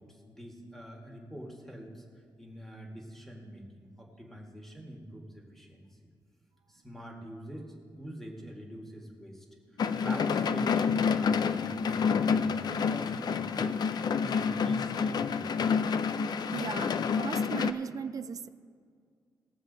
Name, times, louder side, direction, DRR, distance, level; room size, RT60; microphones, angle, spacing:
voice 1, 0.0-2.0 2.4-5.9 6.7-9.4 10.0-13.8 14.2-15.6, equal, 5° left, -1 dB, 1.7 m, -45 dB
sound 1, 9.8-17.7, left 6 dB, 55° left, 0.4 m, -28 dB
voice 2, 16.5-18.5, right 7 dB, 45° right, 14 dB, 0.4 m, -37 dB
19.0 x 7.3 x 4.0 m, 2.1 s
wide cardioid pair, 150°, 8 cm